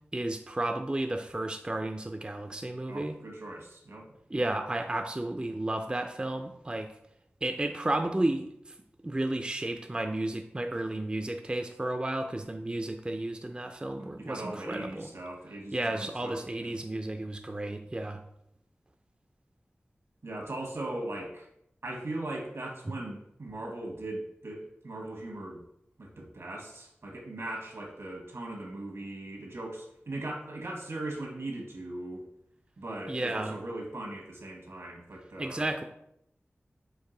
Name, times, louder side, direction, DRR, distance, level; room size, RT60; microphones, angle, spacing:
voice 1, 0.1-3.2 4.3-6.9 7.4-8.7 9.0-15.1 15.7-18.2 33.1-33.5 35.4-35.8, right 1 dB, 20° right, 5 dB, 0.4 m, -32 dB
voice 2, 2.9-4.2 14.0-16.8 20.2-21.5 21.8-25.6 26.0-32.3 32.8-35.7, right 2 dB, 75° right, 1 dB, 1.1 m, -39 dB
4.6 x 2.6 x 3.7 m, 0.77 s
wide cardioid pair, 45°, 4 cm